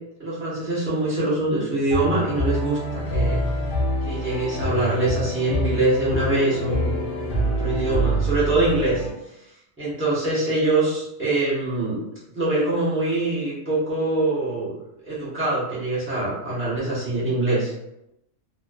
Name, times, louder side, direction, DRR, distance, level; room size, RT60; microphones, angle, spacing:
voice 1, 0.2-3.4 4.0-7.0 7.3-9.1 9.8-12.0 12.3-14.7 15.0-17.8, right 2 dB, 10° right, -9 dB, 0.8 m, -24 dB
sound 1, 1.9-9.1, equal, 60° left, 0.5 m, -26 dB
2.5 x 2.2 x 2.2 m, 0.85 s
omnidirectional pair, 1.4 m